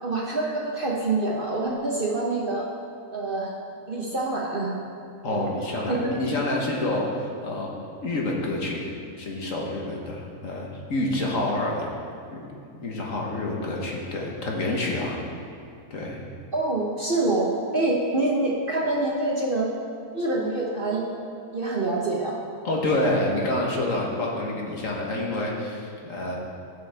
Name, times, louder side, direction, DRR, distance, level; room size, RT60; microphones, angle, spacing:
voice 1, 0.0-2.7 3.1-3.5 3.9-4.7 5.2-5.4 5.9-6.1 16.5-19.7 20.1-21.1 21.5-22.4, right 2 dB, 40° right, -3 dB, 1.1 m, -26 dB
voice 2, 5.2-7.7 8.0-8.9 9.2-11.9 12.3-12.5 12.8-15.2 15.9-16.2 22.6-26.4, left 1 dB, 55° left, -2 dB, 1.6 m, -28 dB
15.5 x 6.6 x 3.5 m, 2.3 s
omnidirectional pair, 1.7 m